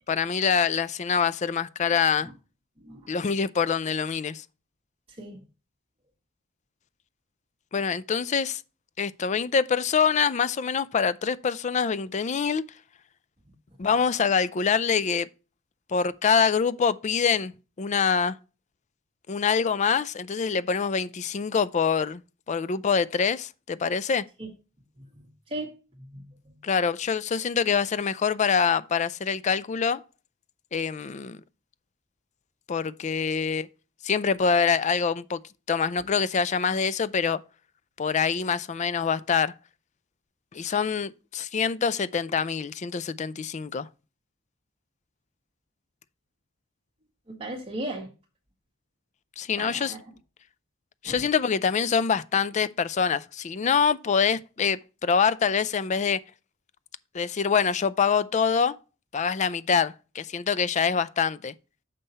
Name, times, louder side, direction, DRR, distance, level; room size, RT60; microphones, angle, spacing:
voice 1, 0.1-2.3 3.1-4.4 7.7-8.6 9.0-12.6 13.8-15.3 15.9-17.5 17.8-18.4 19.3-22.2 22.5-24.3 26.6-30.0 30.7-31.4 32.7-33.7 34.0-35.4 35.7-37.4 38.0-39.5 40.5-43.9 49.4-50.0 51.0-56.2 57.1-58.8 59.1-61.5, left 6 dB, 35° left, 0.4 m, -25 dB
voice 2, 25.2-25.7 26.1-26.5 47.3-48.1 49.6-50.0 51.0-51.2, right 1 dB, 30° right, 1.3 m, -36 dB
6.7 x 5.5 x 4.1 m
head